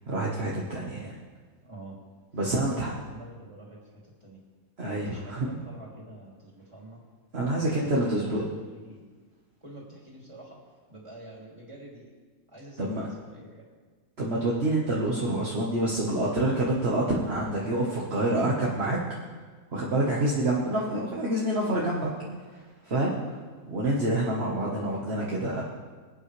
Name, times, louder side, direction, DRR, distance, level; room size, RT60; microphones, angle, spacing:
voice 1, 0.1-1.1 2.3-2.9 4.8-5.5 7.3-8.5 12.8-13.1 14.2-19.0 19.7-22.1 22.4-23.4 23.7-25.6, right 1 dB, 45° right, -4 dB, 1.6 m, -27 dB
voice 2, 1.6-2.0 2.5-4.4 5.0-7.0 7.7-8.4 8.7-9.0 9.6-10.6 10.9-12.0 12.5-13.7, right 1 dB, 20° right, -4 dB, 3.2 m, -46 dB
24.0 x 8.8 x 3.3 m, 1.4 s
omnidirectional pair, 1.5 m